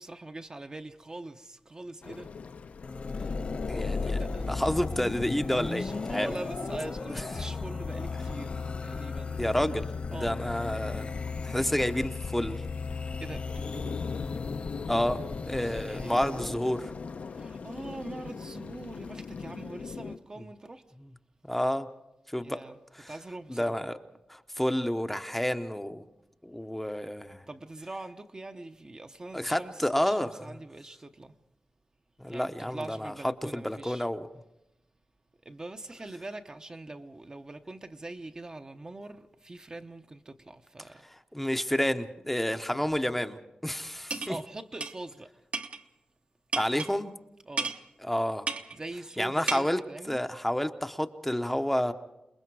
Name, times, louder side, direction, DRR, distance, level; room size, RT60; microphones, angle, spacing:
voice 1, 0.0-2.3 4.0-4.8 5.5-9.4 10.1-10.5 13.2-14.0 15.5-16.5 17.3-20.8 22.4-22.7 23.1-23.8 27.5-31.3 32.3-34.1 35.4-41.0 42.7-42.8 44.3-45.3 47.5-47.7 48.7-50.2, right 2 dB, 30° right, 0.8 m, -43 dB
sound 1, 2.0-20.2, left 5 dB, 70° left, 0.7 m, -42 dB
sound 2, 2.8-16.5, left 4 dB, 50° left, 1.3 m, -35 dB
voice 2, 3.7-4.2 4.5-6.3 7.1-7.5 9.4-11.1 11.4-12.6 14.9-15.2 15.5-16.8 21.0-21.1 21.4-21.9 22.3-22.6 22.9-23.1 23.5-24.0 24.3-26.0 26.4-27.4 29.3-30.6 32.2-34.3 41.1-44.4 46.5-47.2 48.0-48.4 49.2-51.9, equal, 5° left, 0.8 m, -30 dB
sound 3, 44.1-44.4 44.8-44.9 45.5-45.8 46.5-46.9 47.6-47.8 48.5-48.8 49.5-49.6, right 4 dB, 55° right, 1.1 m, -32 dB
28.0 x 21.0 x 4.7 m
wide cardioid pair, 115°, 3 cm